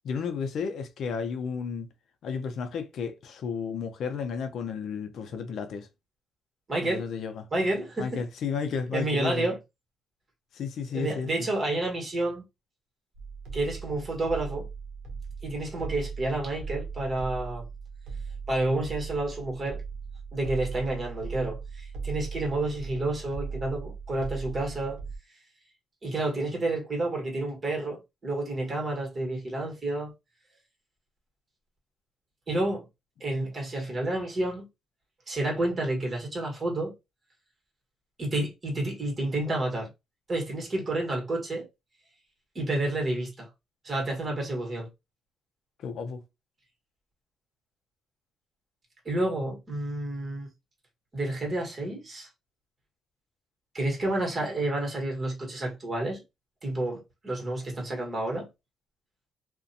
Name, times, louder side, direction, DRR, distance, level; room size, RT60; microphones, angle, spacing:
voice 1, 0.0-1.9 2.2-5.9 6.8-7.4 8.0-9.5 10.5-11.3 45.8-46.2, left 6 dB, 70° left, 0.4 m, -32 dB
voice 2, 6.7-7.1 7.5-8.2 8.9-9.6 10.9-12.4 13.5-14.7 15.4-17.7 18.5-19.8 20.3-25.0 26.0-30.1 32.5-32.9 33.2-34.7 35.3-36.9 38.2-39.9 40.3-41.7 42.5-43.5 43.8-44.9 49.0-50.5 51.1-52.3 53.7-56.2 56.6-58.5, right 2 dB, 35° right, 1.3 m, -30 dB
sound 1, 13.1-25.2, right 5 dB, 80° right, 0.7 m, -38 dB
2.4 x 2.1 x 2.6 m
cardioid pair, 90°, 0 cm